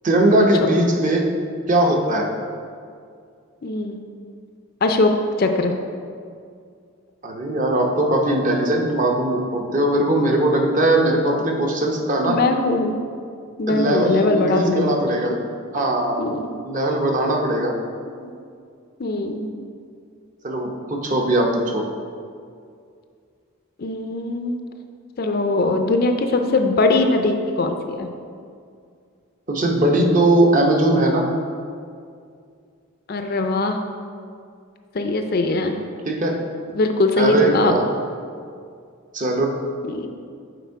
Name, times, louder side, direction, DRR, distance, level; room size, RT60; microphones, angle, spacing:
voice 1, 0.0-1.3 1.7-2.3 7.2-12.4 13.7-15.4 15.7-16.2 16.6-17.7 20.4-21.8 29.5-31.3 36.1-36.3 37.2-37.8 39.1-39.5, right 1 dB, 35° right, 1 dB, 0.8 m, -19 dB
voice 2, 3.6-4.0 4.8-5.1 5.4-5.7 12.3-12.9 13.6-15.1 16.2-16.4 18.2-18.3 19.0-19.5 23.8-24.6 25.2-28.1 33.1-33.8 34.9-35.8 36.7-37.8 39.8-40.1, left 2 dB, 45° left, 5 dB, 0.4 m, -21 dB
7.9 x 4.3 x 4.6 m, 2.3 s
head